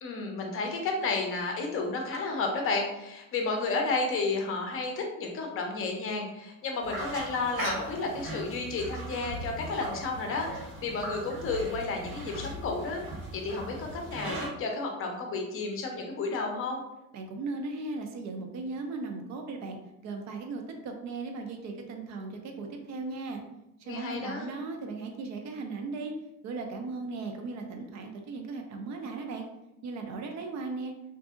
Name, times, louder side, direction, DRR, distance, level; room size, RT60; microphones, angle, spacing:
voice 1, 0.0-13.0 13.3-16.8 23.9-24.5, left 3 dB, 35° left, 2 dB, 0.6 m, -32 dB
sound 1, 6.8-14.5, right 1 dB, 70° right, 1.1 m, -39 dB
voice 2, 17.1-19.8 20.0-23.4 23.8-26.1 26.4-29.4 29.8-30.9, right 3 dB, 45° right, 4 dB, 0.5 m, -37 dB
2.6 x 2.6 x 2.3 m, 0.89 s
cardioid pair, 120°, 40 cm